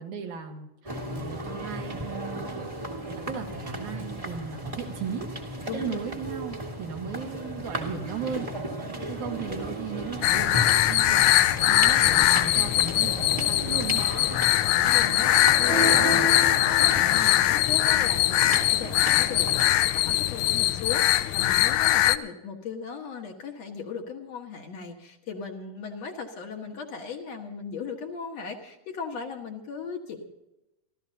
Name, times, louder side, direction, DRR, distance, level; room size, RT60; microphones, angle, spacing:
voice 1, 0.0-2.9 3.2-5.3 5.7-8.7 9.1-14.1 16.0-16.3, right 7 dB, 70° right, 3 dB, 2.7 m, -36 dB
sound 1, 0.8-19.7, right 1 dB, 15° right, 1.2 m, -36 dB
voice 2, 5.7-6.0 8.9-9.3 14.5-30.2, left 5 dB, 60° left, 1 dB, 2.5 m, -37 dB
sound 2, 10.2-22.2, left 14 dB, 80° left, 1.8 m, -21 dB
sound 3, 15.6-17.7, right 2 dB, 35° right, 1.7 m, -31 dB
29.5 x 13.0 x 2.8 m, 0.95 s
omnidirectional pair, 3.7 m